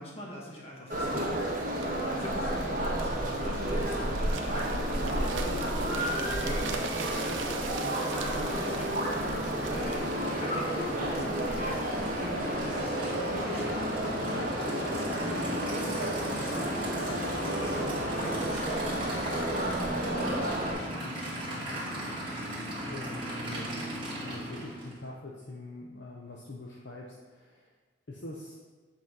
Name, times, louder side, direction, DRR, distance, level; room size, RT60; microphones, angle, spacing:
voice 1, 0.0-1.4 1.9-5.6 5.9-21.9, left 1 dB, 30° left, -3 dB, 1.3 m, -43 dB
sound 1, 0.9-20.7, right 1 dB, 40° right, 1.4 m, -31 dB
sound 2, 1.8-13.7 14.3-14.5, right 5 dB, 75° right, 0.6 m, -43 dB
Aircraft / Idling, 8.2-25.0, right 1 dB, 25° right, 1.5 m, -38 dB
voice 2, 22.6-23.8 24.2-27.7 28.1-28.6, left 2 dB, 60° left, -3 dB, 0.7 m, -44 dB
7.7 x 4.5 x 3.8 m, 1.4 s
head